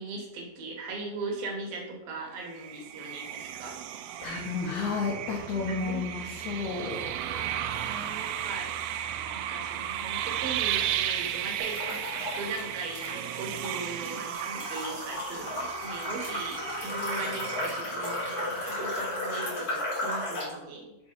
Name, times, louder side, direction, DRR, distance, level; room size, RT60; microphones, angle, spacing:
voice 1, 0.0-3.8 5.5-6.1 7.8-8.7 9.3-21.0, right 3 dB, 70° right, 1 dB, 2.7 m, -39 dB
sound 1, 2.5-18.8, right 10 dB, 90° right, 2.6 m, -35 dB
voice 2, 4.2-7.0, left 4 dB, 80° left, -1 dB, 1.7 m, -32 dB
sound 2, 11.6-12.6 12.9-20.6, left 1 dB, 30° left, 1.8 m, -34 dB
6.3 x 4.4 x 4.3 m, 0.98 s
omnidirectional pair, 4.6 m